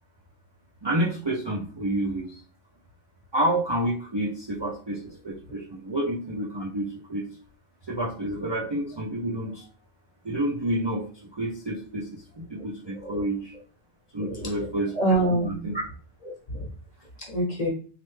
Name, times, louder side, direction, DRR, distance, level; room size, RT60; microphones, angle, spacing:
voice 1, 0.8-2.4 3.3-7.3 7.9-9.7 10.2-11.0 11.3-13.5 14.1-14.9 15.4-15.8, right 1 dB, 45° right, -4 dB, 0.3 m, -29 dB
voice 2, 12.9-13.2 14.2-14.5 14.9-15.7 16.5-16.7 17.3-17.7, right 1 dB, 35° left, -1 dB, 0.9 m, -26 dB
3.1 x 2.4 x 3.1 m, 0.41 s
omnidirectional pair, 1.2 m